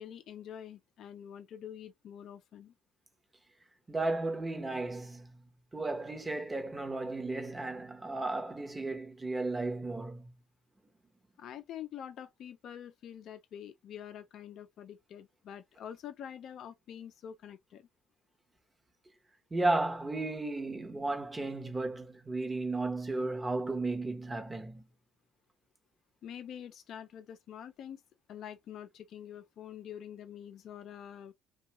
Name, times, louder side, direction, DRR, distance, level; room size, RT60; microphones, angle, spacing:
voice 1, 0.0-2.7 11.4-17.9 26.2-28.0 28.3-31.3, left 9 dB, 60° left, 0.4 m, -46 dB
voice 2, 3.9-5.3 5.7-10.3 19.5-24.8, right 2 dB, 20° right, 0.8 m, -34 dB
2.6 x 2.3 x 2.9 m
supercardioid pair, 90°, 0 cm